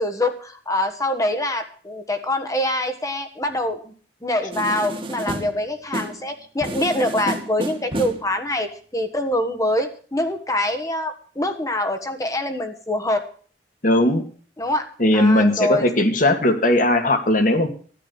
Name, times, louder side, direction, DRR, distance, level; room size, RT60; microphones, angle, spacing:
voice 1, 0.0-3.8 4.2-13.3 14.6-14.9 15.1-15.9, left 1 dB, 20° left, 6 dB, 1.5 m, -24 dB
sound 1, 4.5-6.3 6.6-8.3, right 1 dB, 30° right, 2.0 m, -30 dB
voice 2, 13.8-14.2 15.0-17.7, left 1 dB, 50° left, 7 dB, 2.2 m, -18 dB
13.5 x 10.5 x 7.1 m, 0.43 s
head